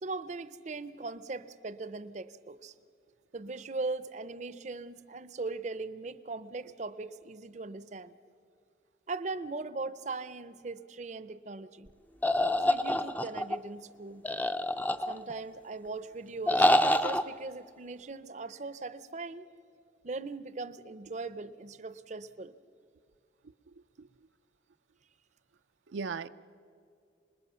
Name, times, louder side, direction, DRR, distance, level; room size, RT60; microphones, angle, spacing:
voice 1, 0.0-2.7 3.3-8.2 9.1-11.9 12.6-14.2 15.1-16.7 17.0-19.5 20.0-22.5, right 3 dB, 40° right, 14 dB, 0.6 m, -39 dB
sound 1, 12.2-13.6 14.2-15.4 16.5-17.2, left 1 dB, 10° left, 0.5 m, -26 dB
voice 2, 23.7-24.1 25.9-26.3, right 5 dB, 90° right, 10 dB, 0.5 m, -38 dB
26.5 x 21.0 x 5.6 m, 2.4 s
head